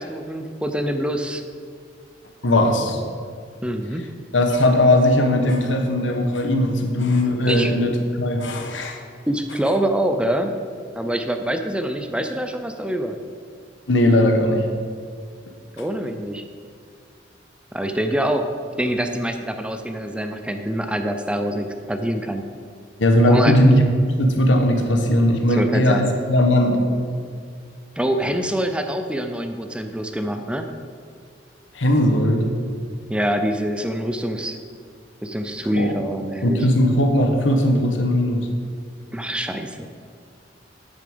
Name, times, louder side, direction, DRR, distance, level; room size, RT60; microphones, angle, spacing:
voice 1, 0.0-1.4 3.6-4.1 7.5-7.7 9.3-10.6 10.9-13.2 15.8-16.5 17.7-18.5 18.8-22.4 23.3-23.6 25.5-26.0 28.0-30.7 33.1-34.6 35.2-36.7 39.1-39.9, right 1 dB, 5° right, 6 dB, 0.5 m, -25 dB
voice 2, 2.4-3.0 4.3-9.0 13.9-14.7 23.0-26.8 31.7-32.5 35.7-35.9 36.4-38.5, left 1 dB, 90° left, 4 dB, 1.1 m, -18 dB
9.1 x 7.2 x 5.1 m, 2.1 s
head